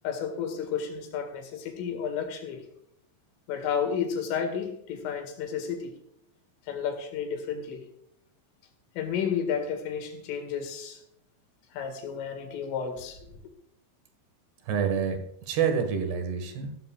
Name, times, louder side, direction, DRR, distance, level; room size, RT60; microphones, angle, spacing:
voice 1, 0.0-2.6 3.5-5.9 6.7-7.8 9.0-11.0 11.7-13.2, left 7 dB, 90° left, 5 dB, 4.7 m, -32 dB
voice 2, 14.6-16.7, right 7 dB, 65° right, 6 dB, 3.5 m, -28 dB
16.0 x 13.5 x 2.5 m, 0.75 s
omnidirectional pair, 5.5 m